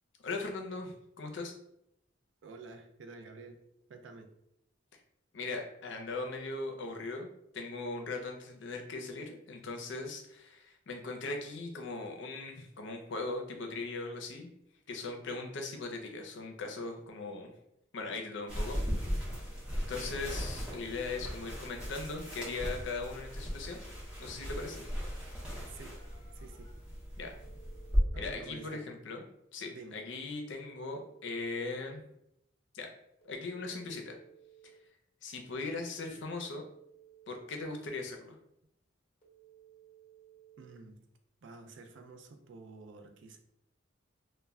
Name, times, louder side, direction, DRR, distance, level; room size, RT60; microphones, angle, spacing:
voice 1, 0.2-1.5 5.3-7.3 7.5-14.5 14.9-17.5 17.9-18.8 19.7-23.8 24.2-24.8 27.2-27.5 28.2-29.2 29.5-32.0 32.7-32.9 33.3-34.2 35.2-36.7 37.3-38.3, left 3 dB, 70° left, 2 dB, 0.5 m, -39 dB
voice 2, 2.4-3.6 3.9-4.3 19.8-20.2 25.6-26.0 26.3-26.7 28.1-28.9 29.7-30.0 40.6-41.1 41.4-43.4, right 3 dB, 70° right, 6 dB, 0.4 m, -50 dB
sound 1, 18.5-28.0, equal, 5° right, 0.7 m, -37 dB
Telephone, 25.7-26.7 27.2-28.7 30.2-31.7 33.2-34.7 36.2-37.7 39.2-40.7, right 10 dB, 30° left, 0.8 m, -59 dB
2.1 x 2.1 x 3.5 m, 0.78 s
head